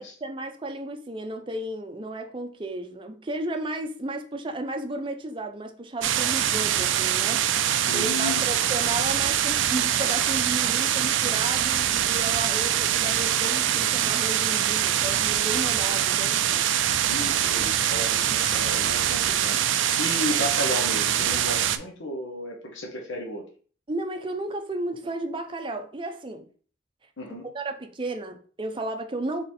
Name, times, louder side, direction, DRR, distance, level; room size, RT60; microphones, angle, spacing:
voice 1, 0.0-7.7 7.9-16.4 23.9-26.4 27.5-29.4, right 2 dB, 25° right, 0.5 m, -33 dB
sound 1, 6.0-21.8, right 10 dB, 75° right, 0.4 m, -24 dB
voice 2, 7.9-8.6 12.5-12.7 17.1-23.5 27.2-27.5, left 1 dB, 75° left, 1.0 m, -34 dB
4.0 x 3.2 x 4.2 m
head